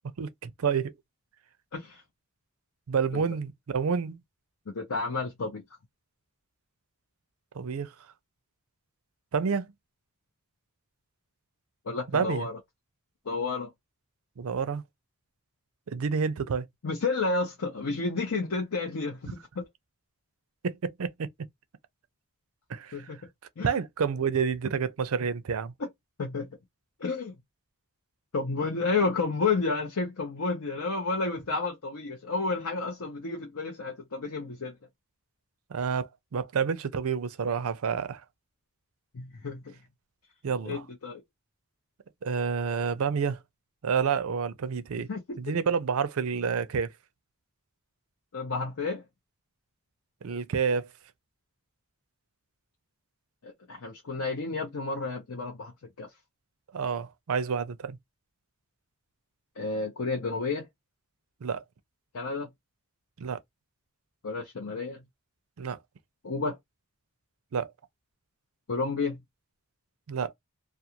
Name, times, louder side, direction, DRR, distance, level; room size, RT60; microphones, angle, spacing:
voice 1, 0.2-0.9 2.9-4.2 7.5-7.9 9.3-9.7 12.1-12.5 14.4-14.8 15.9-16.7 20.6-21.3 22.7-23.0 23.6-25.7 35.7-38.2 40.4-40.8 42.2-43.4 43.8-45.1 45.4-46.9 50.2-50.9 56.7-58.0 61.4-61.6 63.2-63.4 65.6-65.8 67.5-67.7 70.1-70.3, right 6 dB, 75° right, 0.5 m, -29 dB
voice 2, 4.7-5.6 11.9-12.6 13.3-13.7 16.8-19.6 22.9-23.2 23.6-23.7 26.2-26.5 27.0-27.3 28.3-34.7 39.1-39.7 40.7-41.2 45.1-45.4 48.3-49.0 53.4-55.7 56.0-56.1 59.6-60.7 62.1-62.5 64.2-65.0 66.2-66.6 68.7-69.2, left 3 dB, 80° left, 0.7 m, -31 dB
2.4 x 2.3 x 2.8 m
head